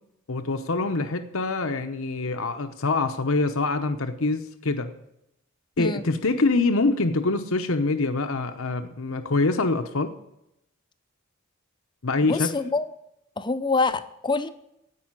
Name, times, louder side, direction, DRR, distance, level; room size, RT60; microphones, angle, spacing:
voice 1, 0.3-4.9 5.8-10.1 12.0-12.5, left 3 dB, 70° left, 7 dB, 0.9 m, -25 dB
voice 2, 12.2-12.9 13.4-14.5, left 3 dB, 20° left, 11 dB, 0.6 m, -25 dB
16.5 x 5.6 x 9.6 m, 0.81 s
head